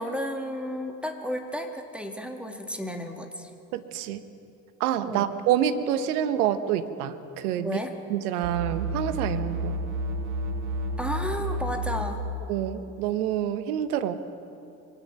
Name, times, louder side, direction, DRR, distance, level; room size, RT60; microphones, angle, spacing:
voice 1, 0.0-3.5 5.0-5.3 7.6-7.9 11.0-12.2, equal, ahead, 3 dB, 1.8 m, -33 dB
voice 2, 3.7-4.2 4.8-7.8 8.1-9.8 12.5-14.2, right 10 dB, 75° right, 11 dB, 1.0 m, -27 dB
sound 1, 8.4-12.5, right 1 dB, 60° right, 2.7 m, -30 dB
24.0 x 9.6 x 5.7 m, 2.6 s
hypercardioid pair, 60°, 45 cm